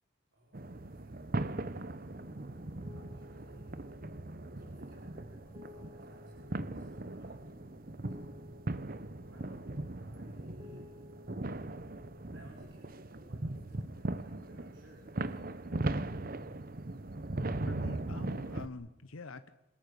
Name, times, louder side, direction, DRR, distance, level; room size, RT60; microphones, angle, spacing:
voice 1, 0.3-1.8 2.5-3.9 4.6-7.6 9.2-11.1 12.3-16.2, right 1 dB, 60° right, -1 dB, 5.1 m, -59 dB
sound 1, 0.5-18.7, right 2 dB, 45° right, 0.9 m, -39 dB
Piano, 2.2-12.5, left 1 dB, 20° right, 2.1 m, -55 dB
voice 2, 17.6-19.5, left 3 dB, 85° left, 11 dB, 0.9 m, -46 dB
26.5 x 20.5 x 6.9 m, 0.90 s
head